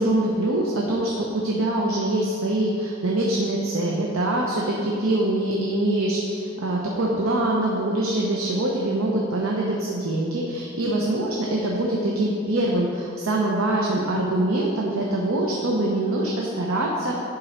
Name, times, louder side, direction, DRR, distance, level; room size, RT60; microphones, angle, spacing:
voice 1, 0.0-17.1, right 1 dB, 85° right, -2 dB, 0.8 m, -24 dB
10.5 x 3.9 x 4.5 m, 2.4 s
head